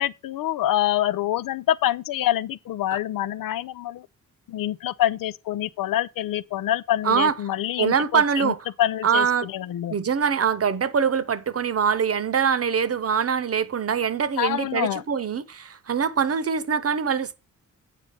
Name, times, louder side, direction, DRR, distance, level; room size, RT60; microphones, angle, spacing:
voice 1, 0.0-4.1 4.5-10.0 14.4-15.0, left 13 dB, 85° left, 0.6 m, -26 dB
voice 2, 7.8-8.6 9.0-9.5 9.9-17.3, right 6 dB, 45° right, 0.9 m, -23 dB
8.6 x 4.0 x 6.5 m
cardioid pair, 90°, 33 cm